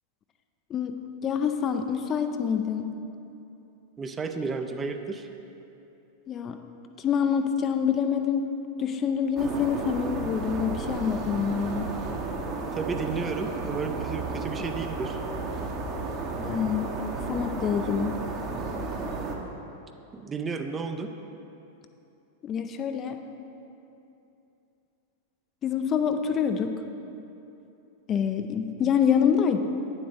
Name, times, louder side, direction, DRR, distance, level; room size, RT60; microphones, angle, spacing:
voice 1, 1.2-2.9 6.3-6.6 7.0-8.5 8.8-11.9 16.4-17.0 17.3-18.2 22.4-23.2 25.6-26.7 28.1-29.6, left 7 dB, 30° left, 6 dB, 0.5 m, -26 dB
voice 2, 4.0-5.3 12.7-15.2 20.1-21.1, right 4 dB, 20° right, 6 dB, 0.6 m, -32 dB
sound 1, 9.4-19.4, right 3 dB, 35° right, 1.1 m, -33 dB
9.5 x 7.3 x 5.2 m, 2.8 s
figure-of-eight pair, 90°, 0 cm